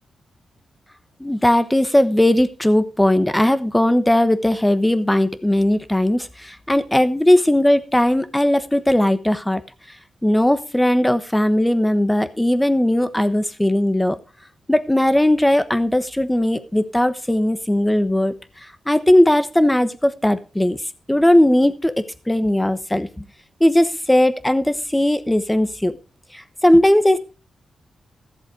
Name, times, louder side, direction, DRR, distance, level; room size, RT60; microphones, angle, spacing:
voice 1, 1.2-9.6 10.2-14.2 14.7-18.3 18.9-20.8 21.1-23.1 23.6-26.0 26.3-27.2, left 1 dB, 5° left, 12 dB, 1.1 m, -18 dB
14.0 x 7.6 x 4.8 m, 0.33 s
cardioid pair, 95°, 0 cm